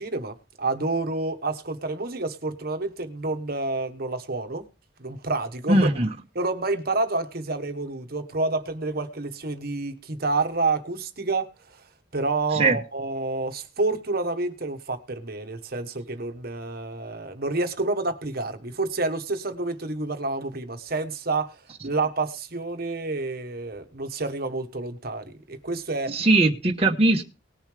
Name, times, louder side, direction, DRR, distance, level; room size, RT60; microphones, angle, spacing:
voice 1, 0.0-4.6 5.0-5.9 6.3-11.8 12.1-26.2, right 3 dB, 50° right, 1.2 m, -29 dB
voice 2, 5.7-6.1 12.5-12.8 26.1-27.2, right 2 dB, 30° right, 1.1 m, -20 dB
19.5 x 7.1 x 3.3 m
head